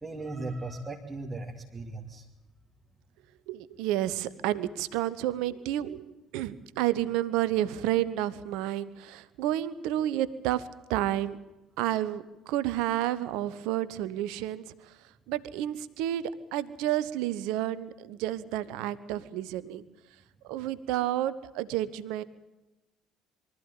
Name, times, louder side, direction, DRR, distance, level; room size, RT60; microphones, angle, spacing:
voice 1, 0.0-2.2, right 2 dB, 15° right, -1 dB, 2.4 m, -37 dB
voice 2, 3.5-6.0 6.3-11.4 11.8-19.8 20.4-22.2, right 13 dB, 65° right, 16 dB, 1.0 m, -30 dB
23.5 x 14.0 x 9.1 m, 1.0 s
figure-of-eight pair, 55°, 0 cm